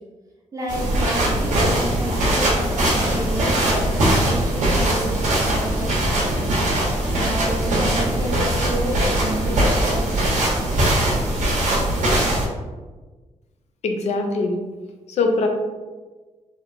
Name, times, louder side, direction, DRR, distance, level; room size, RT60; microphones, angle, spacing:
voice 1, 0.5-6.6 7.1-10.3, right 1 dB, 25° right, -2 dB, 0.4 m, -31 dB
sound 1, 0.7-12.5, right 1 dB, 80° right, 0.7 m, -21 dB
voice 2, 13.8-14.6 15.2-15.5, left 3 dB, 60° left, 4 dB, 0.4 m, -21 dB
2.9 x 2.0 x 2.4 m, 1.3 s
wide cardioid pair, 175°, 13 cm